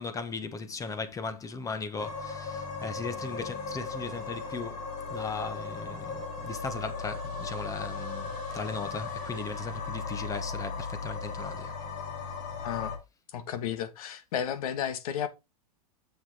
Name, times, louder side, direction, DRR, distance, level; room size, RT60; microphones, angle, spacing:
voice 1, 0.0-11.7, left 4 dB, 15° left, 1.1 m, -37 dB
sound 1, 2.0-13.0, left 4 dB, 40° left, 2.4 m, -37 dB
voice 2, 12.6-12.9 13.3-15.3, left 9 dB, 70° left, 1.3 m, -33 dB
7.3 x 6.0 x 3.9 m
hypercardioid pair, 125°, 19 cm